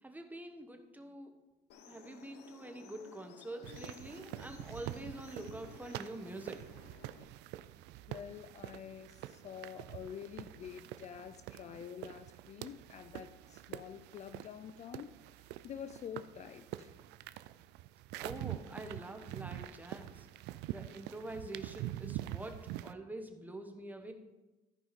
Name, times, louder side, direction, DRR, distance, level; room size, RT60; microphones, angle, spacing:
voice 1, 0.0-1.3 1.9-6.7 18.2-20.3 20.7-24.1, right 1 dB, 10° right, 5 dB, 1.1 m, -46 dB
sound 1, 1.7-7.2, left 7 dB, 80° left, 0.8 m, -55 dB
sound 2, 3.6-22.9, right 14 dB, 85° right, 0.4 m, -46 dB
voice 2, 8.1-17.0, left 8 dB, 40° left, 11 dB, 0.4 m, -48 dB
13.5 x 4.9 x 4.2 m, 1.1 s
cardioid pair, 110°, 17 cm